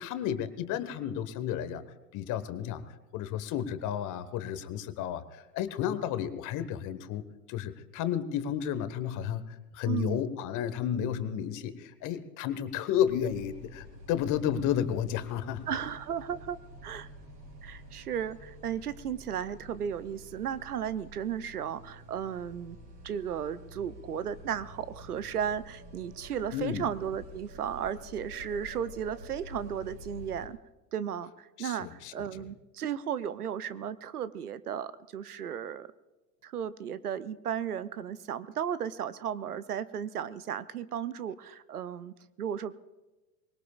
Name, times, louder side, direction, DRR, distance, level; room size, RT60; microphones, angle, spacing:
voice 1, 0.0-1.8 2.1-2.8 3.1-15.7 26.5-26.9 31.6-32.1, left 9 dB, 40° left, 12 dB, 1.3 m, -32 dB
voice 2, 9.9-10.2 15.7-17.1 17.6-22.8 23.0-30.6 30.9-35.9 36.4-42.8, right 8 dB, 80° right, 16 dB, 0.8 m, -35 dB
sound 1, 13.0-30.5, equal, 35° right, 4.3 m, -49 dB
24.0 x 20.5 x 2.4 m, 1.1 s
figure-of-eight pair, 80°, 45 cm